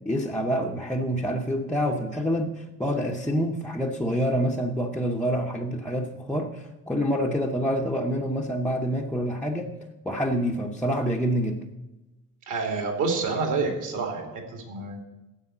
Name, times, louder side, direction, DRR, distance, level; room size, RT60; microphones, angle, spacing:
voice 1, 0.1-9.7 10.0-11.6, equal, 5° left, -1 dB, 0.6 m, -27 dB
voice 2, 12.5-15.0, right 4 dB, 60° right, 3 dB, 2.7 m, -28 dB
9.7 x 8.0 x 8.8 m, 1.0 s
cardioid pair, 180°, 35 cm